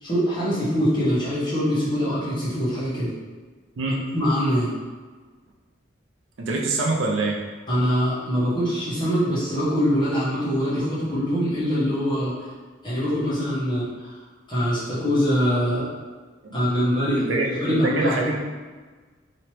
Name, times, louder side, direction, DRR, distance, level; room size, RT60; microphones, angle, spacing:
voice 1, 0.0-3.1 4.1-4.7 7.7-12.5 12.8-14.1 14.5-15.9 16.5-18.2, equal, 25° left, -10 dB, 1.3 m, -23 dB
voice 2, 6.4-7.4 16.4-16.6 17.2-18.4, right 2 dB, 75° right, -1 dB, 0.5 m, -25 dB
3.1 x 2.9 x 3.0 m, 1.4 s
head